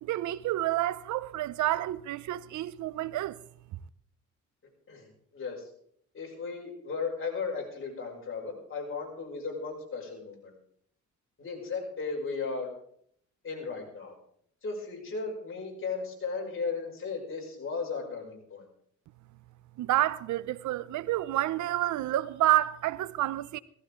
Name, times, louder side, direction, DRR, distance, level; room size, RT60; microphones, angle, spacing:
voice 1, 0.0-3.4 19.8-23.6, right 14 dB, 75° right, 0.6 m, -29 dB
voice 2, 4.9-5.7 6.1-10.5 11.4-12.7 13.4-14.1 14.6-18.6, left 4 dB, 45° left, 6.0 m, -36 dB
16.5 x 15.0 x 3.7 m
cardioid pair, 90°, 30 cm